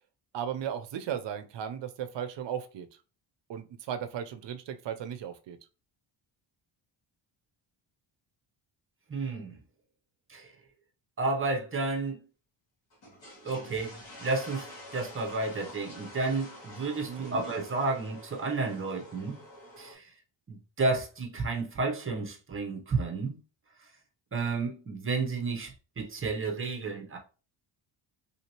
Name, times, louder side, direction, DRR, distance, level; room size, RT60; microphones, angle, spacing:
voice 1, 0.3-2.9 3.5-5.6 17.0-17.4, right 9 dB, 60° right, 0.6 m, -36 dB
voice 2, 9.1-9.6 10.3-10.5 11.2-12.2 13.4-13.9 14.2-14.7 14.9-19.4 19.8-20.1 20.5-23.4 24.3-27.2, right 3 dB, 25° right, 0.8 m, -31 dB
sound 1, 12.9-19.9, left 1 dB, 60° left, 1.9 m, -48 dB
3.4 x 2.7 x 2.9 m
cardioid pair, 125°, 49 cm